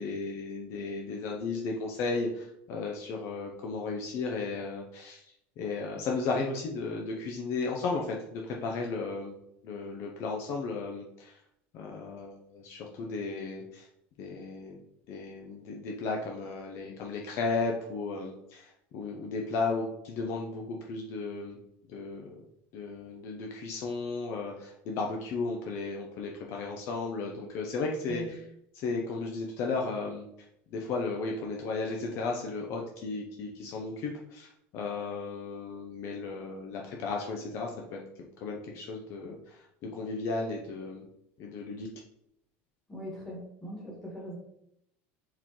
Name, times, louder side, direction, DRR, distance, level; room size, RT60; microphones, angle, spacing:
voice 1, 0.0-5.2 5.6-9.4 9.6-11.4 11.7-13.9 14.2-14.8 15.1-21.6 21.9-22.4 22.7-28.4 28.7-30.3 30.7-38.0 38.4-41.1 41.4-41.9, left 3 dB, 45° left, 1 dB, 0.6 m, -34 dB
voice 2, 42.9-44.4, equal, 5° left, -5 dB, 1.6 m, -40 dB
4.5 x 3.7 x 3.0 m, 0.78 s
cardioid pair, 165°, 6 cm